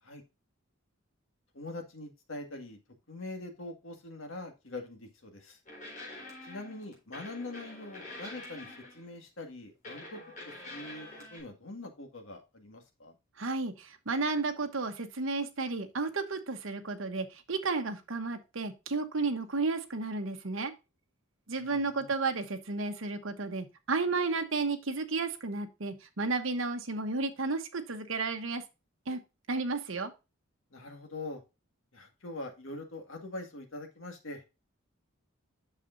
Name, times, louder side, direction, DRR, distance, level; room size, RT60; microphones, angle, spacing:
voice 1, 1.5-2.8 3.1-5.6 6.4-10.2 10.5-13.2 21.6-22.1 30.7-31.4 31.9-34.4, left 2 dB, 65° left, 3 dB, 1.9 m, -43 dB
sound 1, 5.7-9.2 9.8-11.4, left 2 dB, 40° left, 4.2 m, -46 dB
voice 2, 13.4-20.7 21.5-28.6 29.1-29.2 29.5-30.1, right 3 dB, 65° right, 7 dB, 1.0 m, -32 dB
8.3 x 6.6 x 2.6 m, 0.27 s
head